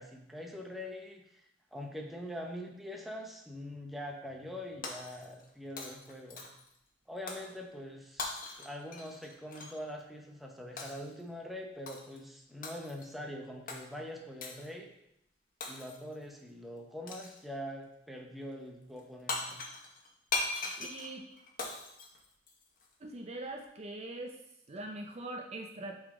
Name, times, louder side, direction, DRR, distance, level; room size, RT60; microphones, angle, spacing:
voice 1, 0.0-1.4 1.7-6.5 7.1-14.9 15.7-19.6, left 1 dB, ahead, 1 dB, 0.7 m, -43 dB
Shatter, 4.8-5.5 5.8-6.7 7.3-7.5 8.2-9.8 10.8-11.1 11.9-12.2 12.6-13.1 13.7-13.8 14.4-14.7 15.6-16.1 17.1-17.4 19.0-19.1 19.3-22.9, left 3 dB, 45° left, 0.9 m, -40 dB
voice 2, 20.8-21.2 23.0-24.4 24.7-26.0, right 2 dB, 35° right, 3 dB, 0.5 m, -42 dB
7.9 x 3.9 x 3.6 m, 0.79 s
head